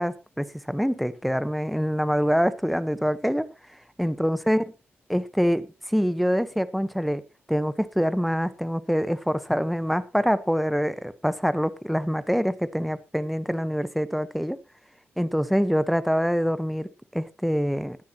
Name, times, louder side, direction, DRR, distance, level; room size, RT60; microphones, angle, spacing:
voice 1, 0.0-3.5 4.0-4.6 5.1-5.6 5.9-7.2 7.5-14.6 15.2-18.0, equal, ahead, 1.1 m, -25 dB
20.0 x 9.4 x 3.0 m
cardioid pair, 80°, 4 cm